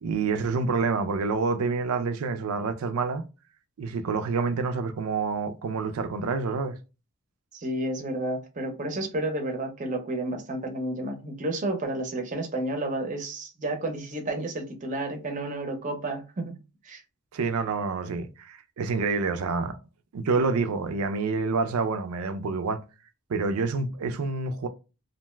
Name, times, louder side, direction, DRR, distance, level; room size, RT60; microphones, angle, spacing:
voice 1, 0.0-3.3 3.8-6.8 17.3-19.7 20.1-22.8 23.3-24.7, right 4 dB, 80° right, 0.4 m, -27 dB
voice 2, 7.5-16.6 16.8-17.0, right 1 dB, 35° right, 0.6 m, -31 dB
2.6 x 2.2 x 3.1 m
head